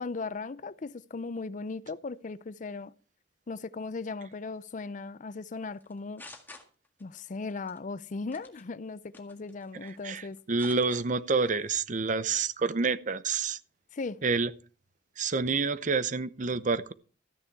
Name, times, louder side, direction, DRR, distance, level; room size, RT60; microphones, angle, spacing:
voice 1, 0.0-2.9 3.5-6.2 7.0-10.4 13.9-14.2, left 3 dB, 45° left, 0.5 m, -37 dB
sound 1, 5.8-7.2 7.5-7.8 8.3-8.6 9.1-10.0 10.3-11.0 11.4-11.7, left 2 dB, 10° left, 1.7 m, -49 dB
voice 2, 9.7-13.6 14.2-14.5 15.2-16.9, right 4 dB, 45° right, 0.7 m, -28 dB
14.0 x 9.9 x 4.6 m
head